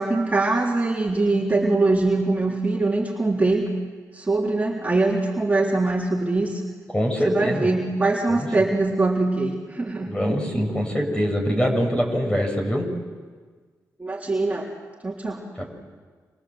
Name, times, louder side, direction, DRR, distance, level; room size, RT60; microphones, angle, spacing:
voice 1, 0.0-3.7 4.1-6.6 7.2-10.1 14.0-14.7 15.0-15.4, right 2 dB, 20° right, -2 dB, 3.6 m, -22 dB
voice 2, 6.9-7.7 8.3-8.7 10.1-12.9 15.6-15.7, equal, 15° left, 3 dB, 6.7 m, -24 dB
27.0 x 27.0 x 7.8 m, 1.5 s
cardioid pair, 70°, 7 cm